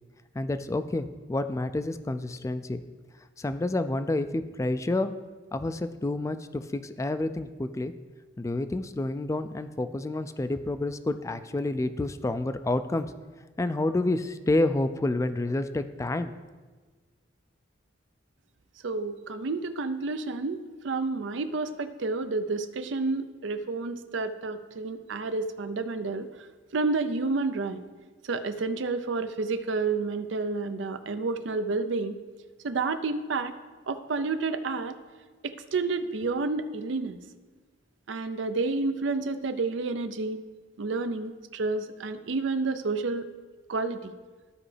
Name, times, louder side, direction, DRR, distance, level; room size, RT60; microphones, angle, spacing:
voice 1, 0.3-2.8 3.4-5.1 5.5-7.9 8.4-13.1 13.6-16.3, left 2 dB, 15° left, 11 dB, 0.3 m, -29 dB
voice 2, 18.8-26.5 26.7-27.8 28.2-32.2 32.6-33.6 33.9-35.0 35.4-37.2 38.1-40.4 40.8-43.3 43.7-44.1, right 3 dB, 75° right, 10 dB, 0.5 m, -30 dB
14.0 x 4.9 x 3.3 m, 1.4 s
head